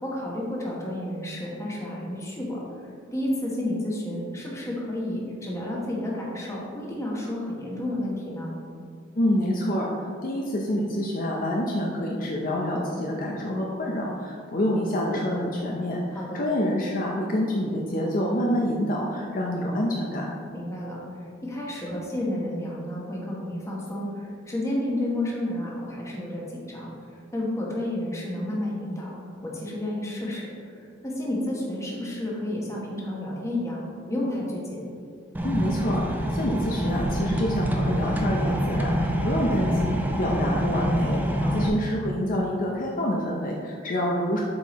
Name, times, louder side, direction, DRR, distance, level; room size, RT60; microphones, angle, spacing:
voice 1, 0.0-8.5 16.1-16.4 20.5-21.0 21.4-26.9 27.3-29.1 29.4-33.8 34.1-34.8 41.4-41.7, left 1 dB, 15° left, -4 dB, 1.1 m, -31 dB
voice 2, 9.2-20.4 35.4-44.4, equal, 45° left, -2 dB, 0.6 m, -27 dB
sound 1, 35.3-41.7, equal, 10° right, 0.4 m, -26 dB
7.4 x 4.5 x 3.0 m, 2.3 s
head